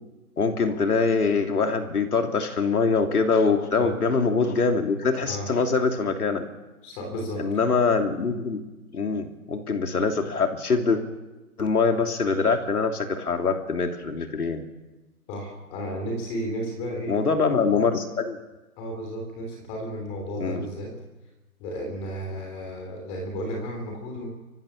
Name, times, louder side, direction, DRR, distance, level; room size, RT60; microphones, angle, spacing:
voice 1, 0.4-6.5 7.4-8.6 8.9-11.0 11.6-14.6 17.1-18.4 20.4-20.7, left 4 dB, 75° left, 4 dB, 3.1 m, -24 dB
voice 2, 6.8-7.4 15.3-17.2 18.8-20.9 21.6-24.3, equal, 15° left, 1 dB, 3.2 m, -33 dB
25.0 x 15.5 x 7.3 m, 1.1 s
hypercardioid pair, 165°, 45 cm